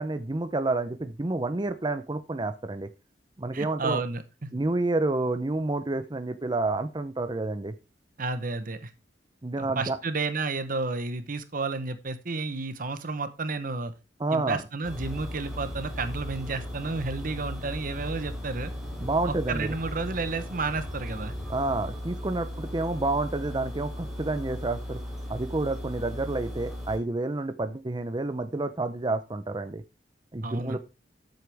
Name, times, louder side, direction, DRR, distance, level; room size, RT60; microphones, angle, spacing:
voice 1, 0.0-2.9 3.4-4.0 4.5-7.7 9.4-10.0 14.2-14.6 19.0-19.8 21.5-25.0 25.3-29.8 30.3-30.8, right 2 dB, 25° right, 10 dB, 0.7 m, -29 dB
voice 2, 3.5-4.5 8.2-8.9 9.6-13.9 14.3-18.7 19.2-21.3 30.4-30.8, right 3 dB, 50° right, 11 dB, 0.9 m, -31 dB
sound 1, 14.8-27.0, left 1 dB, ahead, 3.6 m, -37 dB
13.0 x 7.9 x 3.5 m, 0.28 s
head